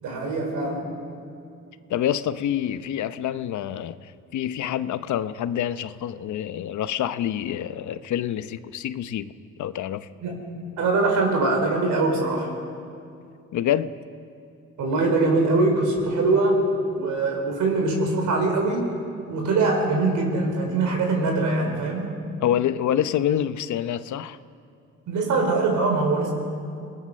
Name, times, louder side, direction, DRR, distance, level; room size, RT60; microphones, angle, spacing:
voice 1, 0.0-1.0 10.2-10.4 10.8-12.5 14.8-16.6 16.9-18.9 19.3-22.1 25.1-26.3, right 3 dB, 75° right, 5.2 m, -22 dB
voice 2, 1.9-9.3 9.6-10.1 13.5-13.9 22.4-24.4, left 10 dB, 70° left, 0.8 m, -27 dB
26.5 x 18.5 x 6.5 m
cardioid pair, 90°, 30 cm